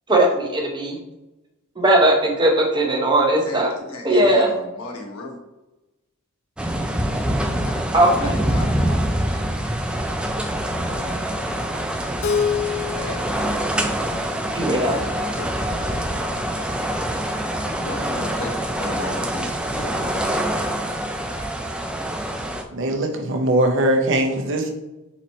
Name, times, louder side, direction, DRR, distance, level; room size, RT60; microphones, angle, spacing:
voice 1, 0.1-1.0 1.8-3.7 4.0-4.5 7.9-8.3 14.5-15.0, right 1 dB, 20° right, 0 dB, 0.8 m, -18 dB
voice 2, 3.4-5.4 7.6-7.8 8.2-9.4 10.8-14.4 14.7-16.8 17.7-20.3, left 2 dB, 85° left, 1 dB, 1.0 m, -36 dB
sound 1, 6.6-22.6, right 1 dB, 5° right, 0.3 m, -25 dB
Keyboard (musical), 12.2-15.1, left 7 dB, 60° left, 0.4 m, -28 dB
voice 3, 22.7-24.7, right 1 dB, 65° right, 3 dB, 0.7 m, -20 dB
4.1 x 3.0 x 4.1 m, 1.0 s
head